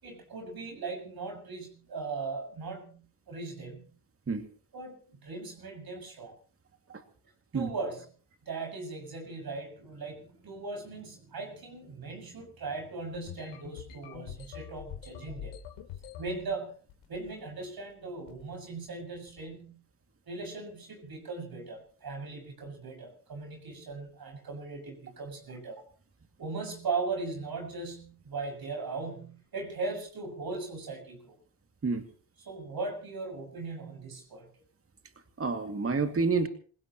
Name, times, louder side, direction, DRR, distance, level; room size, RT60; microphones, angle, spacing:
voice 1, 0.0-3.0 3.3-3.9 4.7-6.3 7.5-8.1 8.4-15.6 16.2-16.7 17.1-19.8 20.3-25.8 26.4-31.4 32.4-34.5, right 3 dB, 45° right, 3 dB, 6.8 m, -38 dB
sound 1, 13.1-16.4 16.9-17.4 17.7-17.9 18.3-18.6 19.1-19.4, left 10 dB, 80° left, 3.4 m, -44 dB
voice 2, 35.4-36.5, right 4 dB, 30° right, 7 dB, 2.4 m, -28 dB
27.5 x 17.0 x 3.1 m, 0.44 s
supercardioid pair, 70°, 49 cm